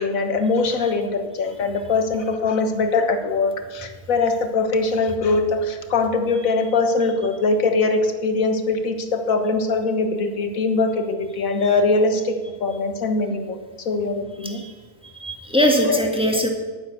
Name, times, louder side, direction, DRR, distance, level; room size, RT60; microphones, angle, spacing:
voice 1, 0.0-12.4 12.6-13.6 13.8-14.6 15.8-16.0, left 3 dB, 60° left, 7 dB, 1.6 m, -22 dB
voice 2, 15.0-16.5, equal, 5° right, 1 dB, 1.6 m, -21 dB
11.0 x 9.1 x 6.7 m, 1.4 s
omnidirectional pair, 1.7 m